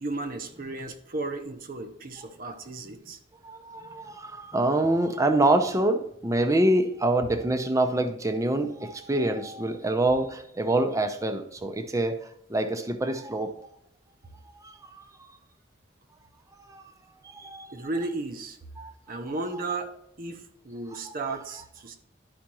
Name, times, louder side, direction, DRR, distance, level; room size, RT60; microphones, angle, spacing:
voice 1, 0.0-3.2 17.7-18.6 19.1-22.0, right 2 dB, 50° right, 6 dB, 0.8 m, -34 dB
voice 2, 3.4-12.2 12.5-13.5 14.6-15.0 16.7-16.8 17.2-17.7 18.8-18.9, right 1 dB, 15° right, 7 dB, 0.6 m, -26 dB
11.5 x 5.0 x 3.0 m, 0.73 s
head